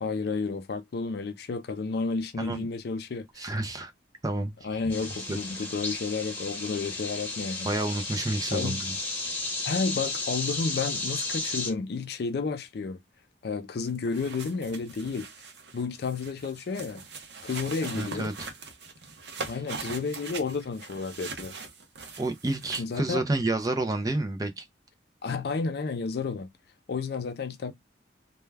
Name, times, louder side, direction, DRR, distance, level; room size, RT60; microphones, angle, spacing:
voice 1, 0.0-3.5 4.6-7.7 8.5-8.8 9.6-13.0 13.4-15.3 15.7-17.0 17.4-18.3 19.5-21.5 22.8-23.2 25.2-26.5 26.9-27.7, left 4 dB, 55° left, 0.4 m, -31 dB
voice 2, 3.4-3.9 4.2-4.6 5.3-5.4 7.6-9.0 17.9-18.5 22.2-24.6, right 2 dB, 20° right, 0.4 m, -29 dB
sound 1, 4.9-11.7, left 2 dB, 10° left, 0.9 m, -33 dB
sound 2, 13.9-23.0, right 4 dB, 60° right, 0.6 m, -41 dB
2.2 x 2.2 x 3.2 m
head